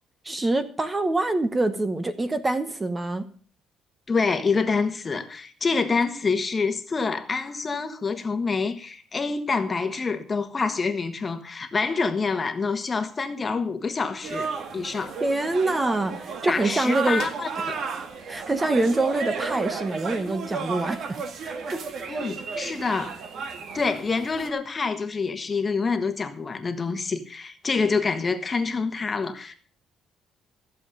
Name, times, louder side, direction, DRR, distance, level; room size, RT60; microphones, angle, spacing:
voice 1, 0.2-3.3 15.2-17.2 17.6-17.7 18.3-21.2 21.4-21.8, right 2 dB, 20° right, 1.0 m, -25 dB
voice 2, 4.1-15.2 16.5-17.7 22.1-23.2 23.7-29.6, left 4 dB, 25° left, 1.3 m, -27 dB
sound 1, 14.2-24.5, right 5 dB, 55° right, 1.8 m, -33 dB
14.5 x 7.5 x 6.5 m
cardioid pair, 120°, 0 cm